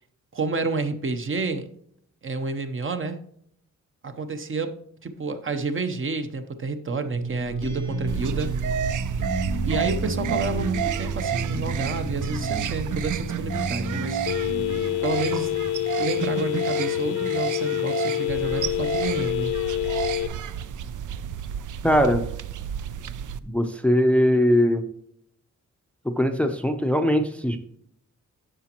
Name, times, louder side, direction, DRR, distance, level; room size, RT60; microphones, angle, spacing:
voice 1, 0.3-1.7 2.2-3.2 4.0-4.7 5.0-8.5 9.7-14.2 15.0-15.5 16.0-19.5, right 3 dB, 45° right, 8 dB, 0.7 m, -29 dB
sound 1, 7.1-15.8, right 2 dB, 65° right, 2.9 m, -31 dB
sound 2, 8.1-23.4, right 9 dB, 85° right, 0.5 m, -31 dB
Telephone, 14.3-20.3, left 14 dB, 65° left, 0.7 m, -26 dB
voice 2, 21.8-22.2 23.5-24.9 26.0-27.6, equal, 5° left, 7 dB, 0.5 m, -21 dB
9.9 x 6.7 x 2.9 m, 0.68 s
wide cardioid pair, 155°, 30 cm